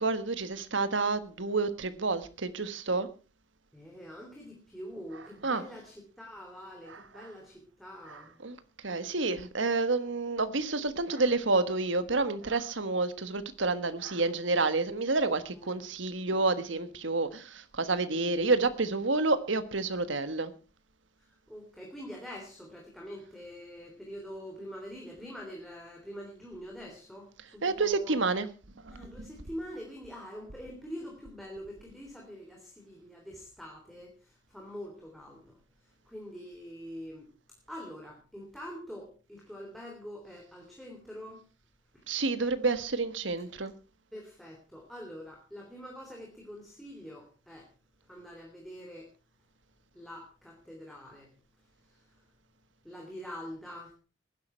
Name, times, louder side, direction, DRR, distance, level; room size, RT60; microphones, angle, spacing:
voice 1, 0.0-3.1 5.4-5.6 7.2-7.3 8.4-8.6 8.8-20.5 27.6-28.5 42.1-43.7, right 3 dB, 70° right, 12 dB, 1.5 m, -29 dB
voice 2, 3.7-8.4 15.5-15.8 21.2-28.2 28.9-37.3 37.7-41.4 41.9-42.0 44.1-47.7 48.1-49.1 49.9-51.3 51.8-52.2 52.8-54.0, equal, ahead, -1 dB, 3.3 m, -45 dB
19.0 x 11.0 x 4.5 m, 0.36 s
head